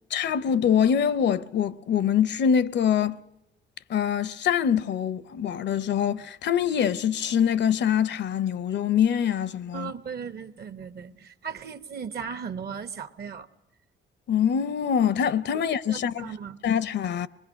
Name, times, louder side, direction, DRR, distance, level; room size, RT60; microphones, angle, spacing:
voice 1, 0.1-3.2 3.9-9.9 14.3-16.3 16.6-17.3, left 8 dB, 60° left, 0.7 m, -24 dB
voice 2, 9.7-13.5 15.5-15.6 15.9-16.6, right 6 dB, 55° right, 1.0 m, -37 dB
25.0 x 21.5 x 6.2 m
cardioid pair, 90°, 20 cm